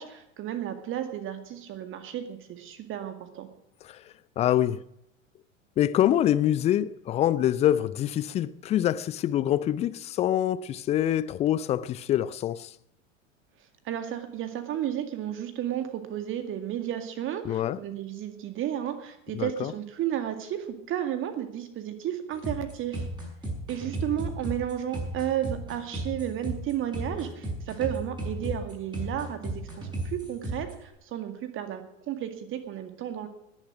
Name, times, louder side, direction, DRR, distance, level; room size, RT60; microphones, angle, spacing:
voice 1, 0.0-3.5 13.8-23.1 23.7-33.3, right 11 dB, 30° right, 2.1 m, -33 dB
voice 2, 4.4-4.8 5.8-12.7 17.4-17.8 19.3-19.7, left 11 dB, 15° left, 0.5 m, -25 dB
sound 1, 22.3-30.7, right 1 dB, 10° right, 6.2 m, -34 dB
20.5 x 7.3 x 6.1 m
figure-of-eight pair, 90°, 39 cm